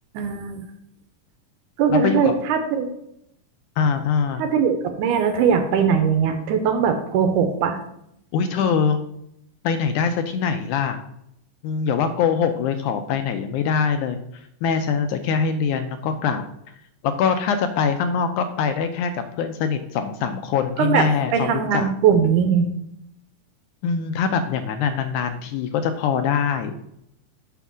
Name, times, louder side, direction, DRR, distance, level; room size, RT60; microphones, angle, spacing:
voice 1, 0.1-0.6 1.8-2.9 4.4-7.8 20.8-21.1 21.3-22.7, right 7 dB, 80° right, 7 dB, 2.3 m, -20 dB
voice 2, 1.9-2.3 3.8-4.4 8.3-9.0 9.6-11.0 11.6-16.4 17.0-21.9 23.8-26.7, left 6 dB, 80° left, 7 dB, 2.0 m, -23 dB
9.4 x 3.5 x 6.1 m, 0.76 s
omnidirectional pair, 3.7 m